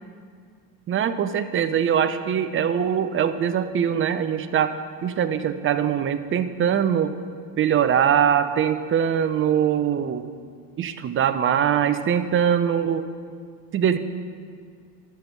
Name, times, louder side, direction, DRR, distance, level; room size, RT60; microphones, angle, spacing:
voice 1, 0.9-4.7 5.0-7.1 7.6-10.3 10.8-13.1 13.7-14.0, right 8 dB, 25° right, 11 dB, 0.5 m, -22 dB
11.5 x 6.7 x 4.6 m, 2.1 s
hypercardioid pair, 75°, 47 cm